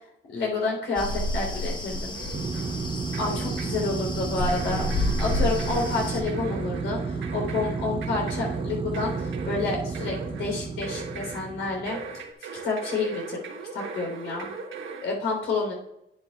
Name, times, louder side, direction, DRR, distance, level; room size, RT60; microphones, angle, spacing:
voice 1, 0.3-2.2 3.2-12.0 12.6-13.4 13.7-14.5 15.0-15.7, left 3 dB, 75° left, -1 dB, 3.6 m, -29 dB
sound 1, 1.0-6.2, left 1 dB, 20° left, 1.3 m, -30 dB
sound 2, 2.1-2.8 3.1-3.8 4.5-11.5 11.9-15.1, right 5 dB, 70° right, 1.4 m, -40 dB
sound 3, 2.3-12.1, right 4 dB, 25° right, 0.9 m, -32 dB
10.5 x 8.6 x 2.4 m, 0.82 s
cardioid pair, 90°, 20 cm